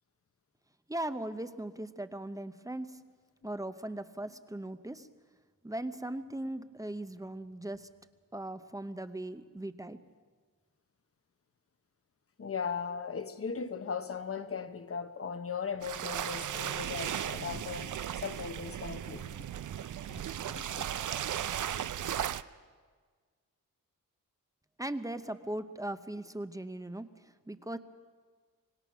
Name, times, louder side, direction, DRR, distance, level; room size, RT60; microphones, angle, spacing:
voice 1, 0.9-3.0 3.4-5.1 5.6-7.9 8.3-10.0 24.8-27.1 27.5-27.8, right 1 dB, 10° right, 0.7 m, -38 dB
voice 2, 12.4-19.4 20.1-20.2 20.5-20.9, left 6 dB, 45° left, 1.0 m, -38 dB
sound 1, 15.8-22.4, right 10 dB, 65° right, 0.6 m, -36 dB
25.0 x 19.5 x 6.1 m
wide cardioid pair, 135°, 33 cm